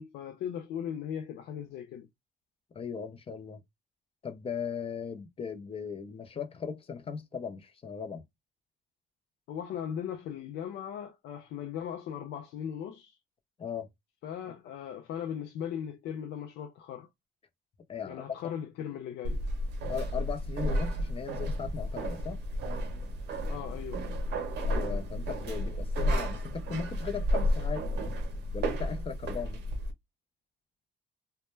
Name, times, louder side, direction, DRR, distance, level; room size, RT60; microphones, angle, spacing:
voice 1, 0.0-2.1 9.5-13.2 14.2-17.1 18.1-19.4 23.5-24.1, left 9 dB, 80° left, 0.4 m, -38 dB
voice 2, 2.7-3.6 4.2-8.2 13.6-13.9 17.9-18.2 19.9-22.4 24.6-27.9 28.5-29.6, left 6 dB, 35° left, 0.6 m, -38 dB
sound 1, 19.2-29.9, equal, 75° right, 0.6 m, -32 dB
2.1 x 2.1 x 3.0 m
cardioid pair, 80°, 17 cm